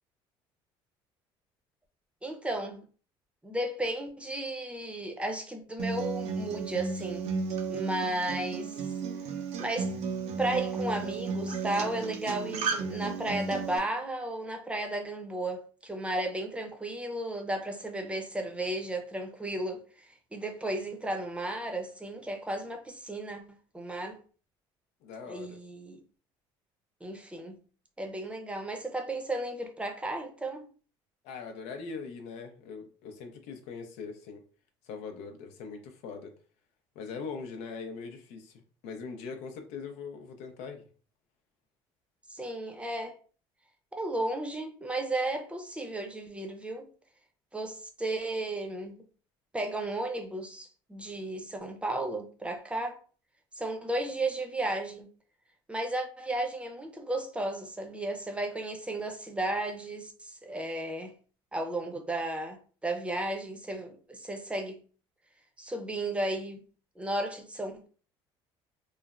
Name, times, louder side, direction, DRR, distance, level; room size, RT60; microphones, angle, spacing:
voice 1, 2.2-2.8 3.4-7.3 7.7-8.9 9.6-9.9 10.4-23.4 23.7-24.2 25.3-26.0 27.0-27.6 28.0-30.7 42.3-43.1 43.9-46.9 47.5-49.0 49.5-53.0 53.6-55.1 55.7-61.1 61.5-64.8 65.6-66.6 67.0-67.9, right 1 dB, 10° right, 0.6 m, -34 dB
Acoustic guitar, 5.8-13.8, right 5 dB, 70° right, 0.5 m, -34 dB
voice 2, 25.0-25.6 31.2-34.4 34.9-36.3 37.0-40.9, left 5 dB, 80° left, 0.6 m, -41 dB
3.1 x 2.0 x 2.4 m
supercardioid pair, 90°, 11 cm